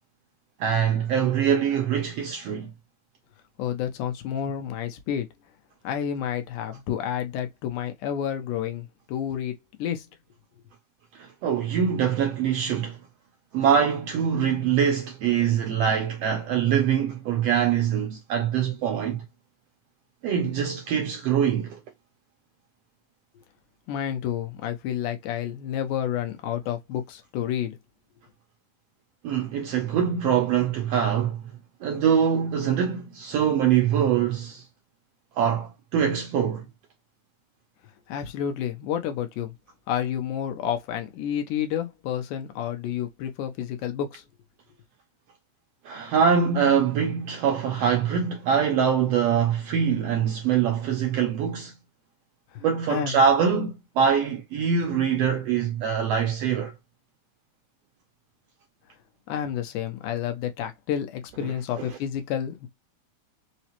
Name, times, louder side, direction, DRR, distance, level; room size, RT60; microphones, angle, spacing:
voice 1, 0.6-2.7 11.1-13.0 13.5-19.2 20.2-21.8 29.2-31.5 31.8-34.6 35.4-36.7 45.8-51.7 52.6-56.7 61.4-62.0, right 7 dB, 80° right, 1.4 m, -24 dB
voice 2, 3.6-5.3 5.8-10.1 23.4-23.5 23.9-27.8 38.1-39.5 39.9-44.2 52.5-53.2 59.3-62.7, left 9 dB, 90° left, 2.3 m, -30 dB
5.3 x 2.1 x 2.8 m
omnidirectional pair, 3.5 m